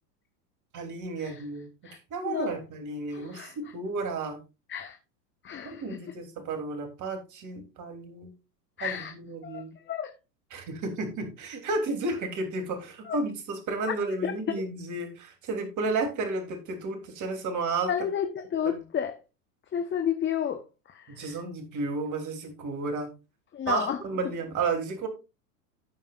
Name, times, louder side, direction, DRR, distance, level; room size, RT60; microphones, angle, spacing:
voice 1, 0.7-1.7 2.1-4.4 5.6-8.3 8.8-9.7 10.5-17.9 21.2-23.1 23.7-25.1, right 3 dB, 35° right, 3.3 m, -32 dB
voice 2, 2.2-2.5 3.1-3.6 4.7-5.0 5.4-6.0 8.8-9.1 9.4-10.1 13.0-13.2 14.2-14.6 17.9-19.2 19.7-21.4 23.5-24.0, left 8 dB, 25° left, 1.2 m, -32 dB
16.5 x 5.5 x 2.5 m
hypercardioid pair, 105°, 48 cm